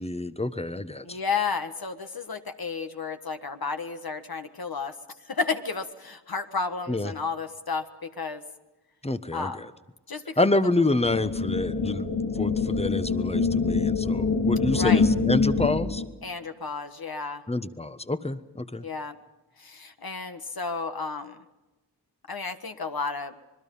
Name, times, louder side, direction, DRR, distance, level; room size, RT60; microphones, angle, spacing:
voice 1, 0.0-1.2 6.9-7.1 9.0-9.7 10.4-16.0 17.5-18.9, left 2 dB, 15° left, 12 dB, 1.2 m, -27 dB
voice 2, 1.0-4.9 5.3-8.4 9.3-9.6 10.1-10.4 14.7-15.0 16.2-17.4 18.8-19.2 19.6-21.4 22.3-23.3, left 4 dB, 55° left, 7 dB, 1.6 m, -32 dB
sound 1, 11.0-16.0, left 4 dB, 80° left, 3.8 m, -25 dB
26.0 x 21.0 x 5.5 m, 1.1 s
cardioid pair, 55°, 44 cm